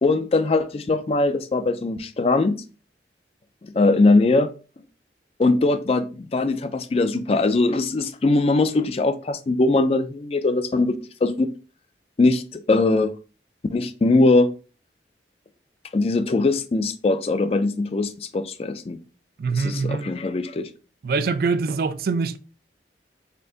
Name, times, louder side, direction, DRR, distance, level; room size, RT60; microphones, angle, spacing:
voice 1, 0.0-2.6 3.7-4.5 5.4-11.0 11.2-11.5 12.2-13.1 13.7-14.5 15.9-19.0 19.5-20.7, left 2 dB, 35° left, 0.3 m, -21 dB
voice 2, 19.4-20.1 21.0-22.4, right 4 dB, 55° right, 0.4 m, -24 dB
4.3 x 2.5 x 3.8 m
head